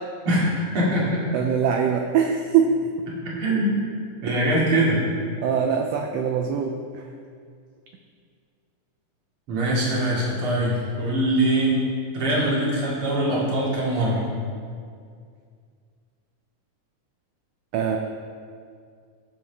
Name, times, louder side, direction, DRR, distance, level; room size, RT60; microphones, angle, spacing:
voice 1, 0.2-1.2 3.4-3.7 4.2-5.0 9.5-11.8 12.1-14.2, right 1 dB, 45° right, -6 dB, 3.1 m, -22 dB
voice 2, 1.3-2.9 4.3-4.4 5.4-7.0 17.7-18.0, right 7 dB, 85° right, 3 dB, 1.4 m, -23 dB
16.0 x 7.4 x 3.5 m, 2.2 s
omnidirectional pair, 3.6 m